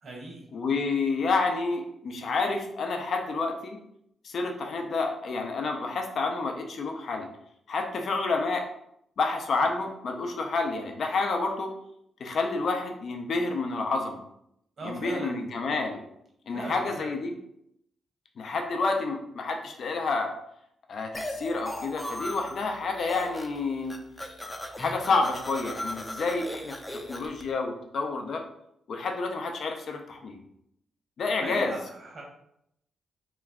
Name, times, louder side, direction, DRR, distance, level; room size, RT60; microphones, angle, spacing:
voice 1, 0.0-0.5 14.8-15.5 16.5-17.1 31.4-32.2, right 2 dB, 55° right, -1 dB, 1.1 m, -39 dB
voice 2, 0.5-3.8 4.2-7.3 7.7-8.6 9.2-11.7 12.2-14.2 14.8-16.0 16.5-17.3 18.4-20.3 20.9-24.0 24.8-26.8 27.1-28.4 28.9-30.4 31.2-31.7, left 3 dB, 65° left, 3 dB, 0.5 m, -29 dB
sound 1, 21.1-22.6 22.9-23.6 23.8-27.4, left 1 dB, 15° left, 0.5 m, -37 dB
3.0 x 2.3 x 3.5 m, 0.76 s
cardioid pair, 75°, 0 cm